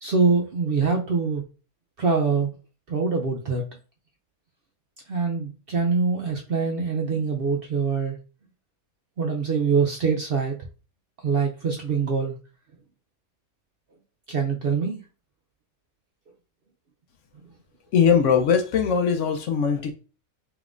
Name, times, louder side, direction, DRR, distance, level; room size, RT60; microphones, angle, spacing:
voice 1, 0.0-1.4 2.0-2.5 2.9-3.6 5.1-8.2 9.2-10.6 11.2-12.3 14.3-15.0, right 5 dB, 60° right, 0.6 m, -24 dB
voice 2, 17.9-19.9, left 7 dB, 65° left, 0.9 m, -20 dB
5.1 x 3.0 x 2.5 m
omnidirectional pair, 1.5 m